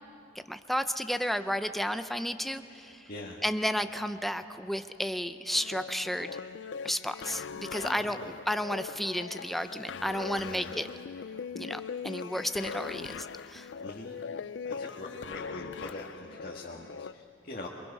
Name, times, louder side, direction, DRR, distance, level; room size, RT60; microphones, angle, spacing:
voice 1, 0.5-3.1 3.4-6.4 6.8-8.2 8.5-10.9 11.5-13.7, equal, ahead, 9 dB, 0.6 m, -32 dB
sound 1, 5.5-17.1, left 6 dB, 70° left, 0.4 m, -41 dB
voice 2, 7.8-8.3 10.4-10.8 13.8-14.2 14.6-17.7, left 2 dB, 50° left, -3 dB, 1.8 m, -42 dB
27.0 x 23.0 x 5.5 m, 2.7 s
head